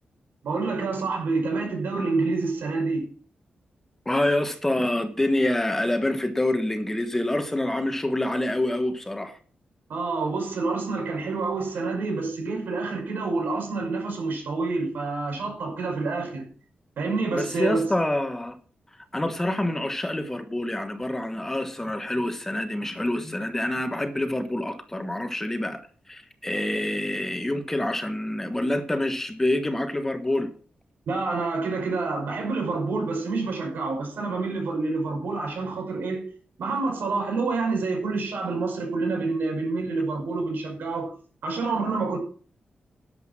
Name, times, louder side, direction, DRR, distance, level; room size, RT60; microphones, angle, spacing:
voice 1, 0.4-3.0 9.9-16.4 17.0-17.9 31.1-36.2 36.6-41.1 41.4-42.2, right 3 dB, 90° right, 5.7 m, -27 dB
voice 2, 4.0-9.4 17.3-18.5 19.1-25.8 26.1-30.5, left 1 dB, 10° left, 1.2 m, -26 dB
12.0 x 8.0 x 6.1 m
wide cardioid pair, 160°, 3 cm